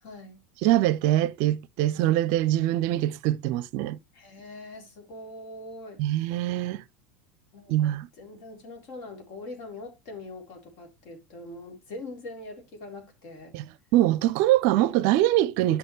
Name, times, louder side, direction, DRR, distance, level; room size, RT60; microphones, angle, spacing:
voice 1, 0.0-0.4 1.9-2.2 4.1-6.4 7.5-13.6, left 2 dB, 55° left, 3.9 m, -43 dB
voice 2, 0.6-4.0 6.0-6.8 7.7-8.1 13.5-15.8, right 14 dB, 55° right, 0.5 m, -23 dB
11.0 x 6.5 x 3.3 m
figure-of-eight pair, 80°, 6 cm